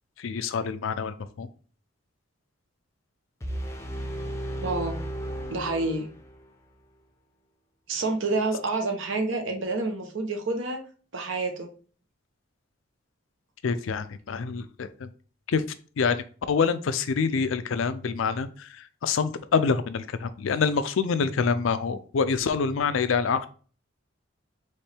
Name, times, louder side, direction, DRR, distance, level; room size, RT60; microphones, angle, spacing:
voice 1, 0.2-1.5 13.6-15.1 15.5-15.6 16.0-23.5, left 5 dB, 75° left, 12 dB, 0.4 m, -26 dB
sound 1, 3.4-6.5, right 1 dB, 15° left, 0.6 m, -34 dB
voice 2, 4.6-5.0 5.5-6.1 7.9-10.8 11.1-11.7, right 3 dB, 70° right, 5 dB, 0.9 m, -28 dB
4.4 x 3.1 x 3.4 m, 0.41 s
head